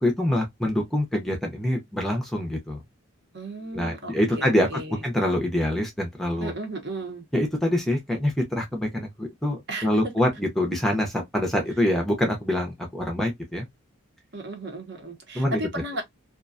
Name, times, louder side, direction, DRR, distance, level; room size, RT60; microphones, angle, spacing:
voice 1, 0.0-2.8 3.7-6.5 7.3-13.7 15.3-15.6, left 1 dB, ahead, 0.5 m, -25 dB
voice 2, 3.3-5.0 6.4-7.2 9.7-9.9 14.3-16.0, right 1 dB, 55° right, 0.8 m, -35 dB
2.4 x 2.2 x 2.4 m
head